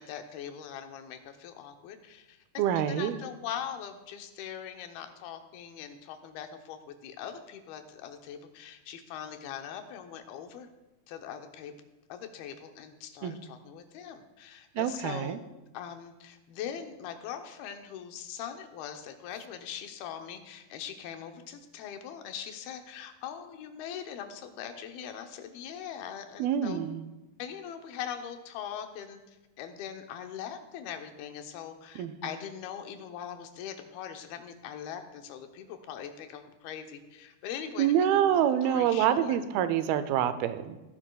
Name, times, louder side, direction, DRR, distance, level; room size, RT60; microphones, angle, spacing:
voice 1, 0.0-2.4 2.7-10.7 11.1-11.7 12.1-15.4 15.7-26.8 27.4-37.9 38.3-39.4, left 9 dB, 90° left, 6 dB, 2.8 m, -41 dB
voice 2, 2.6-3.2 13.2-13.4 14.8-15.4 26.4-27.0 32.0-32.3 37.8-40.8, right 10 dB, 85° right, 12 dB, 2.5 m, -26 dB
17.0 x 10.0 x 2.3 m, 1.1 s
omnidirectional pair, 4.3 m